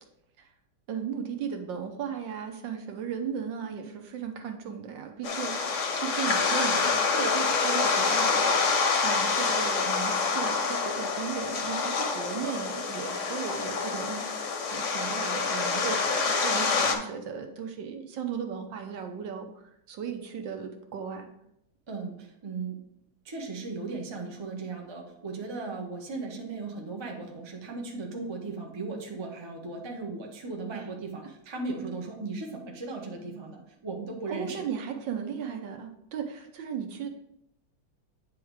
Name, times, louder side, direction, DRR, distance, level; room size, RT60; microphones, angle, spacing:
voice 1, 0.9-8.5 9.0-21.3 30.7-30.8 34.3-37.1, right 7 dB, 70° right, 5 dB, 1.4 m, -36 dB
sound 1, 5.2-16.9, left 4 dB, 55° left, 0.9 m, -27 dB
voice 2, 21.9-22.8 23.2-34.7, right 3 dB, 30° right, 1 dB, 0.5 m, -37 dB
8.9 x 3.5 x 4.7 m, 0.78 s
omnidirectional pair, 2.2 m